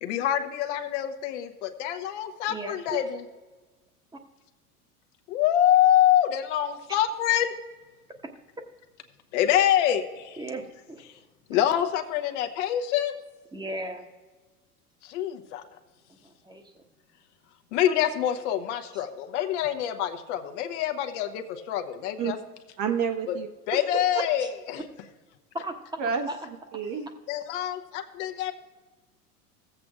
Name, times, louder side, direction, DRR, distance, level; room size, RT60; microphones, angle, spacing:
voice 1, 0.0-3.2 5.3-7.5 9.3-10.4 11.5-13.1 15.0-15.6 17.7-22.4 23.3-23.4 23.7-24.8 27.3-28.5, left 11 dB, 50° left, 6 dB, 0.9 m, -25 dB
voice 2, 2.5-3.0 10.4-11.0 11.5-11.6 13.5-14.1 16.4-16.6 25.5-25.7 26.3-26.4, right 1 dB, 10° right, 4 dB, 1.2 m, -35 dB
voice 3, 22.8-23.8 26.0-26.3 26.7-27.1, right 6 dB, 40° right, 5 dB, 1.2 m, -29 dB
17.0 x 7.7 x 2.4 m, 1.3 s
figure-of-eight pair, 80°, 46 cm